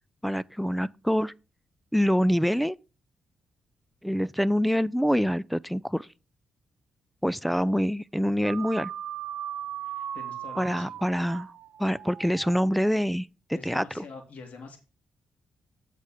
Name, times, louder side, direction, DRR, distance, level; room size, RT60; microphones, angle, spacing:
voice 1, 0.2-1.3 1.9-2.8 4.0-6.1 7.2-8.9 10.6-11.5 11.8-13.3 13.6-14.0, equal, ahead, 0.4 m, -25 dB
sound 1, 8.4-12.9, right 10 dB, 80° right, 0.5 m, -38 dB
voice 2, 10.1-11.0 13.5-14.8, left 4 dB, 65° left, 3.0 m, -45 dB
8.2 x 5.0 x 5.8 m
cardioid pair, 65°, 3 cm